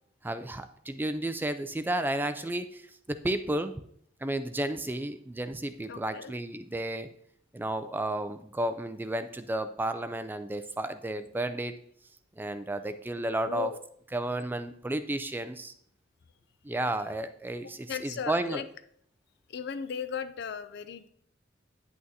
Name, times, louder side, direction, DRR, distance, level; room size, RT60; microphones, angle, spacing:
voice 1, 0.2-3.7 4.2-7.1 7.5-11.8 12.4-13.7 14.1-15.7 16.6-18.6, right 1 dB, 10° right, 10 dB, 0.4 m, -32 dB
voice 2, 5.9-6.3 13.5-13.8 17.9-18.7 19.5-21.1, left 7 dB, 60° left, 12 dB, 0.5 m, -36 dB
9.4 x 8.6 x 2.8 m, 0.66 s
head